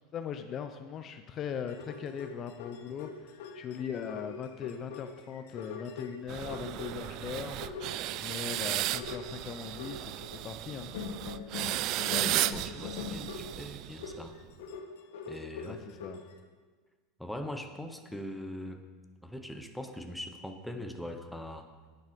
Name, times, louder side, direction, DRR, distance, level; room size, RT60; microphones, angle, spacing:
voice 1, 0.1-7.6 8.2-10.1 10.4-10.9 15.6-16.2, left 7 dB, 35° left, 8 dB, 0.6 m, -39 dB
sound 1, 1.5-7.3 7.6-8.4 8.8-10.5 10.9-16.3, left 5 dB, 75° left, 1.2 m, -43 dB
sound 2, 6.3-14.3, right 15 dB, 50° right, 0.4 m, -35 dB
voice 2, 12.1-14.4 15.3-15.8 17.2-18.8 19.2-21.7, equal, ahead, 5 dB, 0.9 m, -41 dB
9.5 x 9.2 x 5.2 m, 1.4 s
supercardioid pair, 130°, 0 cm